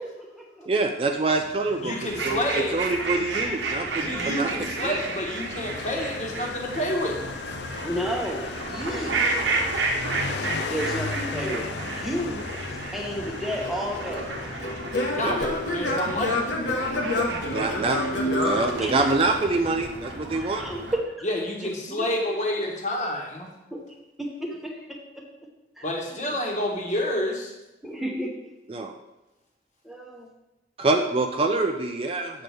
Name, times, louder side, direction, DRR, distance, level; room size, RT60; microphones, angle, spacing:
voice 1, 0.0-0.7 7.8-9.2 10.7-14.2 18.4-18.5 18.8-19.0 20.2-21.0 21.9-22.1 23.7-23.8 24.2-25.2 25.8-25.9 27.8-28.3 29.8-30.3, equal, ahead, -1 dB, 0.9 m, -32 dB
voice 2, 0.7-4.5 4.8-5.0 15.2-15.4 17.5-20.7 28.7-28.9 30.8-32.4, right 3 dB, 30° right, 5 dB, 0.4 m, -26 dB
Motorcycle, 1.3-20.1, left 4 dB, 65° left, 0.4 m, -38 dB
voice 3, 1.8-2.8 3.9-7.6 15.1-16.4 21.2-23.5 25.8-27.5, left 1 dB, 40° left, 0 dB, 1.3 m, -29 dB
sound 1, 2.0-21.0, right 3 dB, 80° right, 1.1 m, -32 dB
Singing / Plucked string instrument, 13.7-19.5, left 1 dB, 80° left, 1.2 m, -28 dB
7.6 x 6.5 x 3.4 m, 1.0 s
head